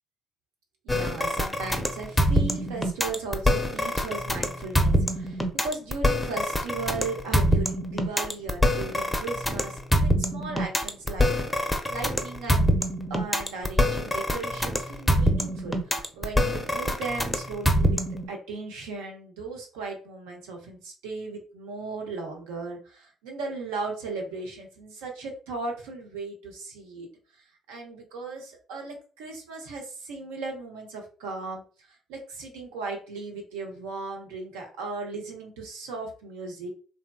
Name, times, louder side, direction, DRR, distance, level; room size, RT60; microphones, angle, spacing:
voice 1, 0.8-12.8 13.1-18.0 18.3-27.1 27.7-31.6 31.9-36.7, right 3 dB, 80° right, 1 dB, 0.6 m, -37 dB
sound 1, 0.9-18.3, equal, 10° left, 0.5 m, -25 dB
2.7 x 2.1 x 2.2 m, 0.39 s
hypercardioid pair, 50°, 0 cm